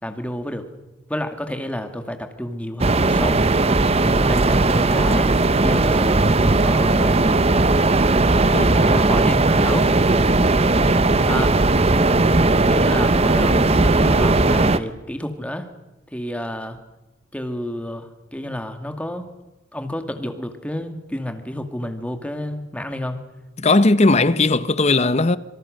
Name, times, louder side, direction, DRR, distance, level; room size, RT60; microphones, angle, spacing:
voice 1, 0.0-0.7 1.1-3.4 3.9-5.3 5.6-7.5 8.5-9.9 11.3-11.6 12.7-15.7 16.1-16.8 17.3-19.3 19.7-23.2, left 1 dB, 5° left, 2.4 m, -30 dB
sound 1, 2.8-14.8, right 2 dB, 30° right, 0.9 m, -17 dB
voice 2, 10.7-11.4 23.6-25.4, left 2 dB, 35° left, 0.9 m, -18 dB
26.5 x 24.5 x 6.6 m
head